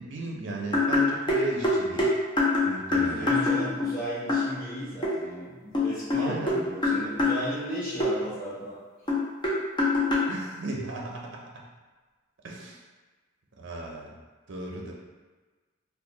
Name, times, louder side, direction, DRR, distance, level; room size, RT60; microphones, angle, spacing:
voice 1, 0.0-2.1 2.6-3.3 6.2-6.6 10.3-11.7 12.4-12.8 13.6-14.2 14.5-14.9, right 2 dB, 65° right, -1 dB, 0.6 m, -35 dB
sound 1, 0.7-4.0 4.3-4.5 5.0-5.1 5.7-7.4 8.0-8.1 9.1-10.3, left 3 dB, 25° left, 0.6 m, -24 dB
voice 2, 2.9-8.8, equal, 45° left, -11 dB, 1.3 m, -35 dB
2.7 x 2.3 x 3.8 m, 1.3 s
head